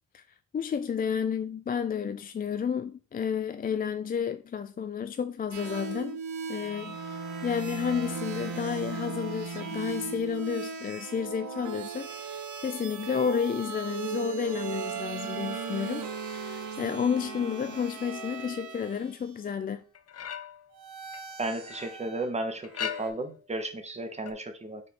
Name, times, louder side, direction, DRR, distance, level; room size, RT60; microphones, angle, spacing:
voice 1, 0.5-6.2 6.5-16.1 16.3-19.8, left 7 dB, 30° left, 0.4 m, -31 dB
sound 1, 5.5-19.1 20.7-22.3 22.7-23.1, right 5 dB, 75° right, 1.3 m, -37 dB
sound 2, 19.9-20.7 21.1-22.0 22.6-23.4 24.3-24.4, left 9 dB, 55° left, 0.8 m, -38 dB
voice 2, 21.4-24.8, right 2 dB, 20° right, 1.2 m, -34 dB
5.3 x 4.2 x 4.2 m
cardioid pair, 105°, 30 cm